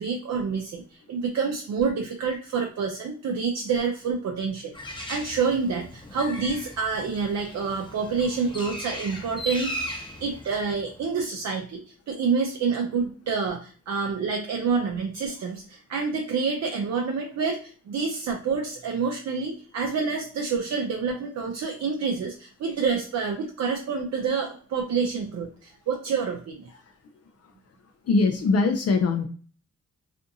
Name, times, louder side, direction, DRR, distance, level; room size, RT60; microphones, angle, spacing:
voice 1, 0.0-26.6, right 5 dB, 65° right, 2 dB, 0.5 m, -28 dB
Bird, 4.7-11.2, equal, 15° left, 0.7 m, -38 dB
voice 2, 26.7-27.0 27.4-27.5 28.0-29.3, left 3 dB, 60° left, 5 dB, 0.4 m, -23 dB
2.6 x 2.5 x 2.5 m, 0.42 s
cardioid pair, 55°, 29 cm